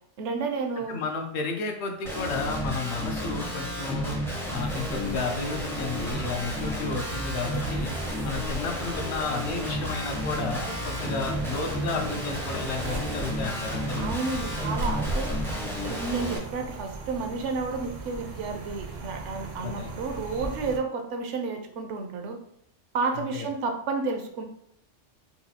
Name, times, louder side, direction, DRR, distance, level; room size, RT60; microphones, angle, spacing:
voice 1, 0.2-1.0 14.0-15.3 15.8-22.4 22.9-24.4, right 4 dB, 75° right, 5 dB, 0.9 m, -31 dB
voice 2, 0.8-4.1 4.5-7.9 8.2-14.1 19.6-19.9 23.1-23.5, left 4 dB, 65° left, 4 dB, 0.9 m, -32 dB
Guitar, 2.0-16.4, equal, 5° left, 0.3 m, -32 dB
sound 1, 4.6-20.8, right 2 dB, 55° right, 0.5 m, -38 dB
4.0 x 2.3 x 2.7 m, 0.70 s
omnidirectional pair, 1.2 m